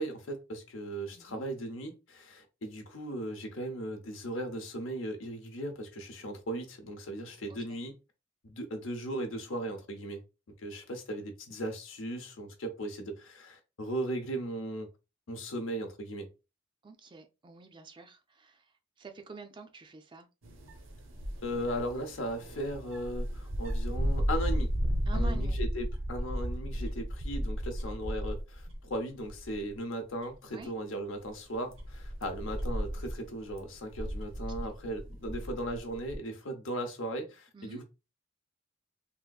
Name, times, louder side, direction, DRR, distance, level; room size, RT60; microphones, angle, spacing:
voice 1, 0.0-8.0 8.4-10.2 10.6-14.9 15.3-16.3 21.4-24.7 25.1-37.8, right 1 dB, 70° left, 0.8 m, -37 dB
voice 2, 1.1-1.4 7.5-7.8 16.8-18.6 19.0-20.3 25.1-25.6 30.5-30.7 37.5-37.8, right 4 dB, 25° right, 0.3 m, -47 dB
sound 1, 20.4-28.9 29.2-29.7 30.2-30.3 31.2-36.2, equal, 70° right, 0.8 m, -34 dB
3.5 x 2.5 x 2.3 m
head